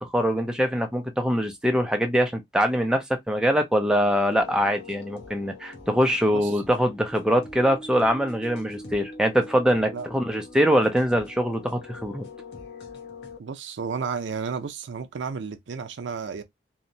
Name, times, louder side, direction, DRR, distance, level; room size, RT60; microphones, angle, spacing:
voice 1, 0.0-12.2, equal, 5° right, 0.4 m, -23 dB
sound 1, 4.3-13.4, left 2 dB, 60° left, 0.8 m, -43 dB
voice 2, 6.3-6.6 9.9-10.1 13.4-16.4, right 5 dB, 75° right, 0.4 m, -32 dB
2.8 x 2.1 x 2.6 m
head